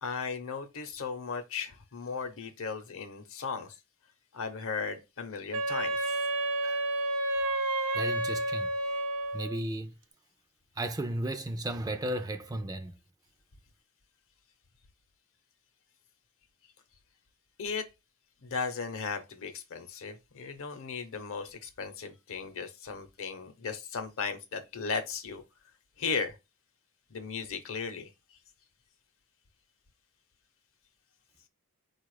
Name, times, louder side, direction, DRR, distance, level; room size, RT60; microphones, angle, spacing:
voice 1, 0.0-3.8 4.3-6.3 17.6-17.9 18.4-25.4 26.0-26.4 27.1-28.4, left 5 dB, 65° left, 0.8 m, -36 dB
Wind instrument woodwind instrument, 5.5-9.6, right 1 dB, 70° right, 0.7 m, -30 dB
voice 2, 7.9-8.7 9.3-9.9 10.8-12.9, right 1 dB, 15° right, 0.4 m, -34 dB
4.4 x 2.4 x 4.7 m
head